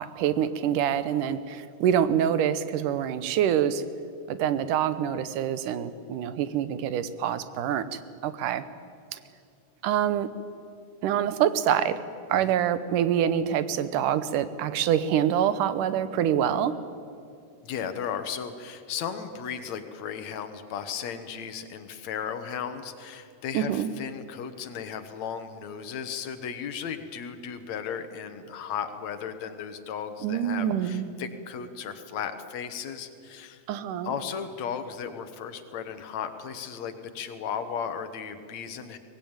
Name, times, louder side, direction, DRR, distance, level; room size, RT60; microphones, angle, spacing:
voice 1, 0.0-3.8 4.3-8.7 9.1-9.2 9.8-10.3 11.0-12.0 12.3-16.7 23.5-23.9 30.2-31.1 33.7-34.1, right 9 dB, 85° right, 13 dB, 2.5 m, -26 dB
voice 2, 17.6-33.6 34.0-39.0, left 7 dB, 65° left, 9 dB, 2.4 m, -35 dB
23.5 x 19.0 x 8.9 m, 2.4 s
omnidirectional pair, 3.6 m